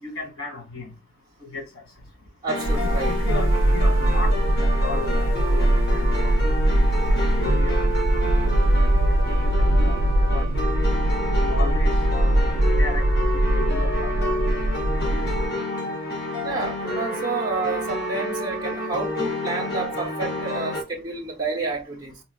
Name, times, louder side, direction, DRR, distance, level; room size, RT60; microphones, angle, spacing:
voice 1, 0.0-0.9 1.5-1.6 2.8-4.3 4.6-6.1 7.1-7.9 8.6-9.1 9.4-10.0 10.3-10.8 11.4-13.1 13.3-14.1 15.0-15.3, left 3 dB, 90° left, 1.9 m, -35 dB
voice 2, 2.4-3.1 16.4-22.2, right 3 dB, 20° right, 0.8 m, -29 dB
sound 1, 2.5-20.8, left 1 dB, 50° left, 0.7 m, -29 dB
sound 2, 2.6-15.5, right 1 dB, 65° right, 0.4 m, -21 dB
3.9 x 2.3 x 2.3 m
head